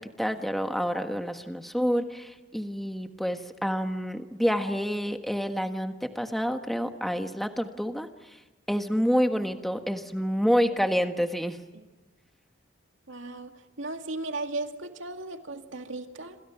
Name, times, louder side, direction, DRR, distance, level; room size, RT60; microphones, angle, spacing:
voice 1, 0.2-8.4 8.7-11.6, equal, ahead, 6 dB, 1.4 m, -28 dB
voice 2, 13.1-16.4, right 2 dB, 80° right, 5 dB, 2.2 m, -36 dB
27.5 x 27.5 x 5.9 m, 1.1 s
head